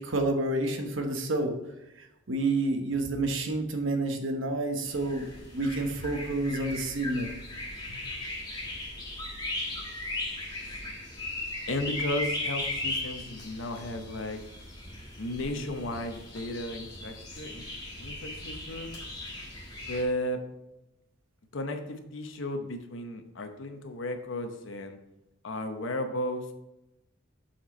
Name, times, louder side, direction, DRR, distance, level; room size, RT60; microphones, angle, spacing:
voice 1, 0.0-1.5 1.9-7.3 7.9-8.0, right 2 dB, 80° right, 4 dB, 1.0 m, -29 dB
sound 1, 4.8-20.0, left 1 dB, 20° left, 1.5 m, -37 dB
voice 2, 11.7-14.4 15.2-17.6 18.0-18.9 19.9-20.4 21.5-25.0 25.4-26.5, left 1 dB, 75° left, 6 dB, 0.8 m, -34 dB
7.6 x 4.4 x 4.2 m, 0.93 s
head